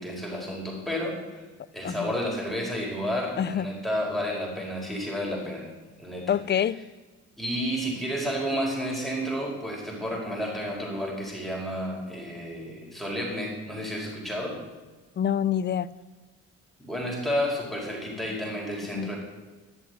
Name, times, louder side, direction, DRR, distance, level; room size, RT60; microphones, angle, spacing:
voice 1, 0.0-1.4 1.7-5.7 6.0-6.4 7.4-14.6 16.8-19.2, equal, ahead, -2 dB, 4.7 m, -31 dB
voice 2, 6.3-6.8 15.2-15.9 18.9-19.1, left 9 dB, 35° left, 18 dB, 0.5 m, -26 dB
12.5 x 7.1 x 9.1 m, 1.3 s
cardioid pair, 90°, 30 cm